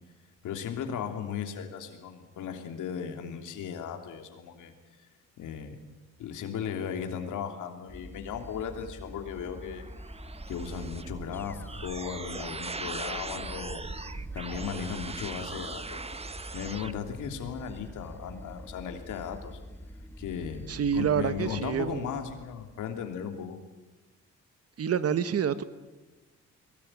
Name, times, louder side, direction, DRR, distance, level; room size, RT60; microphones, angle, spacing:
voice 1, 0.4-4.7 5.4-5.8 6.2-9.9 10.5-13.8 14.3-16.0 16.3-19.6 20.2-20.7 20.9-23.6, left 7 dB, 80° left, 5 dB, 3.2 m, -36 dB
sound 1, 7.9-23.2, equal, 5° left, 1.1 m, -46 dB
sound 2, 9.2-16.9, right 3 dB, 20° right, 1.0 m, -40 dB
voice 2, 20.7-22.1 24.8-25.6, right 8 dB, 50° right, 13 dB, 1.5 m, -27 dB
22.5 x 18.5 x 9.0 m, 1.2 s
cardioid pair, 90°, 30 cm